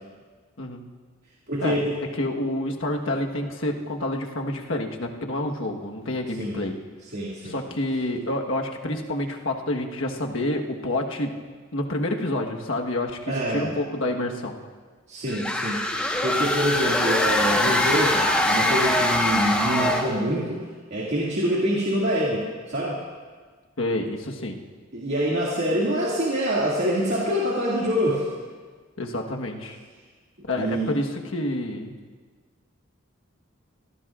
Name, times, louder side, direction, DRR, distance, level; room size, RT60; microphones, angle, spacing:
voice 1, 1.5-1.9 6.4-6.5 7.1-7.5 13.3-13.7 15.1-15.8 16.2-23.0 24.9-28.3 30.5-30.9, equal, 55° right, -6 dB, 2.3 m, -25 dB
voice 2, 2.2-6.7 7.4-11.3 11.7-14.6 23.8-24.6 29.0-29.8 30.5-31.9, left 1 dB, 70° left, 2 dB, 1.4 m, -28 dB
sound 1, 15.3-20.2, left 1 dB, 5° left, 1.2 m, -23 dB
25.0 x 17.0 x 2.5 m, 1.5 s
head